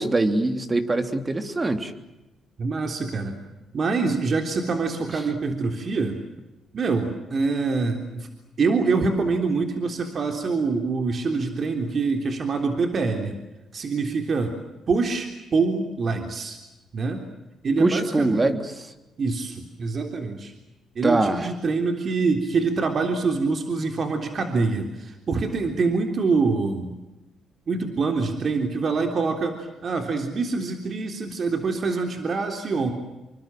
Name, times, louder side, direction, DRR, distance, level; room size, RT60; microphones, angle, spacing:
voice 1, 0.0-1.9 17.8-18.9 21.0-21.5, right 2 dB, 25° right, 8 dB, 3.2 m, -23 dB
voice 2, 2.6-3.4 3.7-6.2 6.7-8.3 8.6-13.4 13.7-14.6 14.9-16.6 16.9-17.3 17.6-18.4 19.2-20.5 21.0-27.0 27.7-32.9, right 4 dB, 45° right, 5 dB, 3.6 m, -25 dB
28.0 x 24.0 x 7.6 m, 1.0 s
cardioid pair, 90°, 0 cm